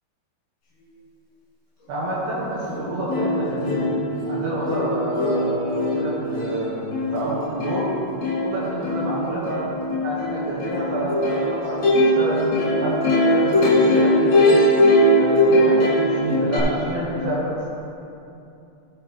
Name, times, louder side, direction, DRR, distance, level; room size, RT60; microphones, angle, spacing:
voice 1, 1.9-4.0 4.3-7.9 8.4-9.7 10.0-14.6 15.2-17.7, right 1 dB, 70° right, -8 dB, 3.0 m, -28 dB
Plucked string instrument, 2.7-2.8 3.1-16.6, left 1 dB, 55° left, 3.0 m, -20 dB
14.5 x 6.3 x 3.1 m, 2.7 s
omnidirectional pair, 4.7 m